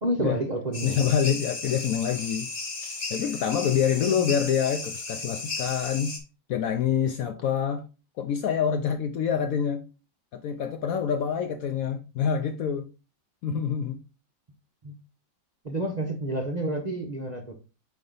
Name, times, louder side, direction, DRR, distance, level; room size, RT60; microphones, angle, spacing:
voice 1, 0.0-1.0 4.1-4.4 14.8-14.9 15.6-17.6, right 1 dB, 45° right, 0.5 m, -30 dB
sound 1, 0.7-6.2, left 3 dB, 45° left, 1.3 m, -35 dB
voice 2, 0.8-2.5 3.1-6.2 6.5-7.9 8.2-9.9 10.3-12.9 13.4-14.0, left 8 dB, 75° left, 0.8 m, -26 dB
5.2 x 4.7 x 3.8 m
omnidirectional pair, 2.0 m